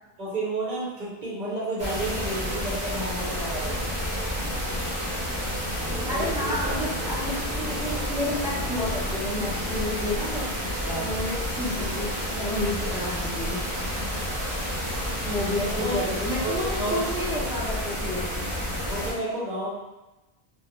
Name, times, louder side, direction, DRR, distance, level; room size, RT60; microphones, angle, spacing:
voice 1, 0.2-3.8 6.1-6.8 10.8-11.1 15.6-16.0 16.4-17.0 18.8-19.7, right 2 dB, 50° right, -6 dB, 0.9 m, -31 dB
sound 1, 1.8-19.1, equal, 30° right, 0.9 m, -30 dB
sound 2, 5.9-12.2, equal, 80° right, 0.9 m, -40 dB
voice 2, 6.1-10.5 11.0-13.9 15.2-18.3, left 1 dB, 5° right, -8 dB, 0.4 m, -31 dB
2.5 x 2.1 x 3.0 m, 1.1 s
omnidirectional pair, 1.1 m